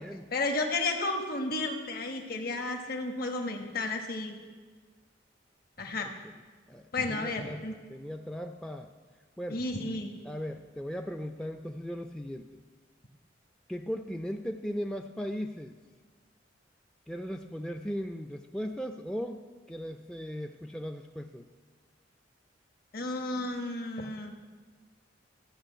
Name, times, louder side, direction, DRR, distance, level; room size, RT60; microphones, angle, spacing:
voice 1, 0.3-4.4 5.8-6.1 6.9-7.7 9.5-10.1 22.9-24.3, left 2 dB, 50° left, 4 dB, 1.2 m, -32 dB
voice 2, 6.0-6.3 6.7-7.6 7.9-8.9 9.4-9.6 10.2-12.5 13.7-15.8 17.1-21.5, equal, 5° left, 4 dB, 0.4 m, -37 dB
14.0 x 6.1 x 9.0 m, 1.5 s
head